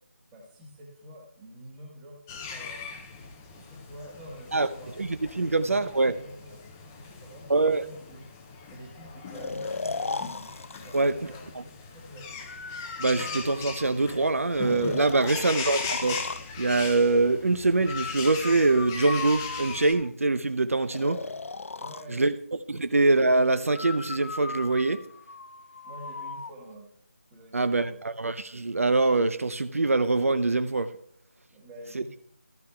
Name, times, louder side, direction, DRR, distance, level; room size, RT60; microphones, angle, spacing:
voice 1, 0.3-2.9 3.5-4.9 5.4-6.6 7.0-8.3 8.7-10.4 10.8-11.5 11.8-12.4 21.0-21.4 21.8-22.4 22.7-22.9 25.8-26.9 27.3-28.0 31.5-32.1, equal, 10° right, 1.3 m, -47 dB
sound 1, 2.3-19.9, left 5 dB, 10° left, 0.5 m, -39 dB
voice 2, 5.0-6.1 7.5-7.8 10.9-11.1 13.0-16.2 16.6-21.2 22.1-22.3 22.7-25.0 27.5-30.9 31.9-32.0, right 3 dB, 70° right, 0.6 m, -24 dB
Breathing, 9.3-11.1 12.5-14.1 14.7-16.5 17.9-20.1 20.9-22.1 23.7-26.5, left 3 dB, 65° left, 0.5 m, -37 dB
15.0 x 12.5 x 2.3 m
figure-of-eight pair, 165°, 8 cm